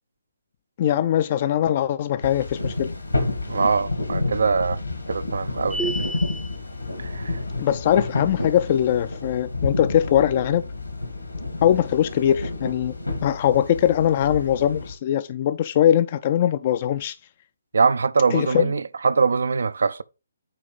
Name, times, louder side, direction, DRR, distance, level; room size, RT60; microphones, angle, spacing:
voice 1, 0.8-2.9 7.6-10.6 11.6-12.9 13.2-17.2 18.3-18.7, left 10 dB, 35° left, 0.4 m, -21 dB
sound 1, 2.2-14.9, left 2 dB, 80° left, 2.1 m, -30 dB
voice 2, 3.5-4.8 5.1-6.1 7.0-7.4 17.7-20.0, right 5 dB, 60° right, 0.4 m, -22 dB
sound 2, 5.7-6.6, right 1 dB, ahead, 0.6 m, -29 dB
8.8 x 3.1 x 5.0 m
figure-of-eight pair, 140°, 0 cm